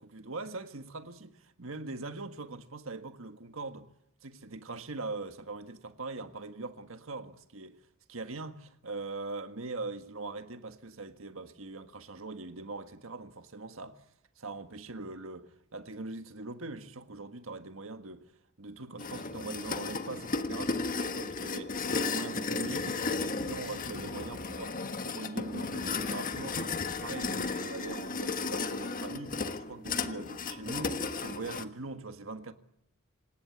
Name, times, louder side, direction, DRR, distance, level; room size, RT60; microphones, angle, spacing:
voice 1, 0.0-3.9 4.2-7.8 8.1-14.0 14.4-18.3 18.6-32.5, right 3 dB, 70° right, 1.7 m, -42 dB
sound 1, 19.0-31.6, left 4 dB, 40° left, 1.4 m, -34 dB
27.0 x 18.0 x 9.6 m
head